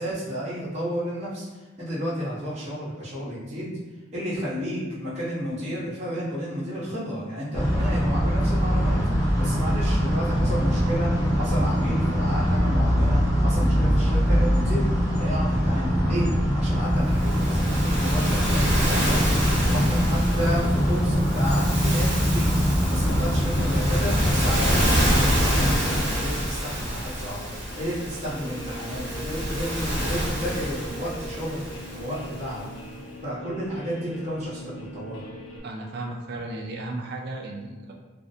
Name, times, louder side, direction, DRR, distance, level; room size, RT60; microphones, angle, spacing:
voice 1, 0.0-1.5 1.8-3.7 4.1-9.0 9.4-14.9 15.1-16.3 16.5-22.5 22.9-31.6 31.9-32.6 33.2-35.3 37.6-37.8, equal, 35° right, -10 dB, 0.9 m, -32 dB
sound 1, 7.5-25.8, equal, 20° left, 0.4 m, -22 dB
Waves surf, 17.0-32.5, equal, 75° right, 0.9 m, -28 dB
Guitar, 27.7-35.6, right 1 dB, 75° left, 0.4 m, -41 dB
voice 2, 35.6-37.9, right 2 dB, 55° right, 1 dB, 0.3 m, -34 dB
2.5 x 2.1 x 2.6 m, 1.2 s
head